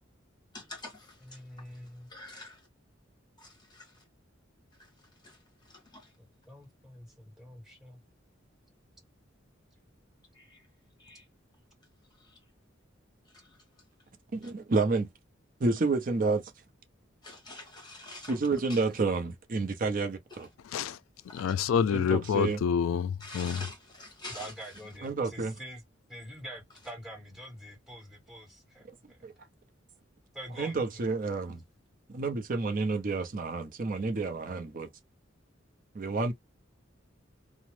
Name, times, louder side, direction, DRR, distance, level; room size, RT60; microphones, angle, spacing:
voice 1, 0.5-0.9 2.1-2.5 17.2-18.3 23.2-24.5, left 2 dB, 20° left, 1.2 m, -43 dB
voice 2, 1.2-2.1 6.2-8.0 24.3-25.8 26.1-29.2 30.3-31.0, equal, 5° right, 1.7 m, -46 dB
voice 3, 14.3-15.1 15.6-16.4 18.3-20.5 21.9-22.6 25.0-25.5 29.2-29.3 30.6-31.6 32.1-34.9 35.9-36.3, right 3 dB, 45° right, 0.5 m, -29 dB
voice 4, 21.3-23.7, left 7 dB, 90° left, 0.3 m, -27 dB
2.9 x 2.0 x 3.1 m
head